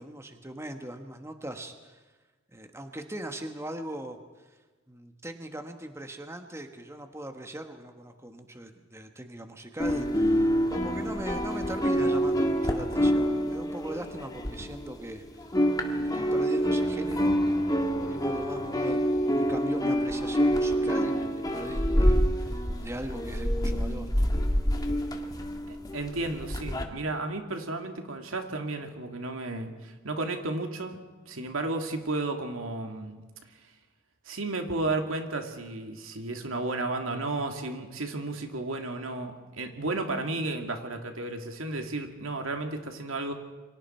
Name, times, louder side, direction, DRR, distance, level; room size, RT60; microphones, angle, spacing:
voice 1, 0.0-2.0 2.5-4.2 4.9-15.2 15.8-17.3 18.0-24.1, right 1 dB, 15° right, 6 dB, 1.4 m, -40 dB
sound 1, 9.8-15.1 15.4-26.8, equal, 20° left, 1.8 m, -27 dB
voice 2, 25.7-31.0 31.3-33.2 34.3-43.3, right 2 dB, 85° right, 4 dB, 2.5 m, -33 dB
28.5 x 24.5 x 4.5 m, 1.3 s
head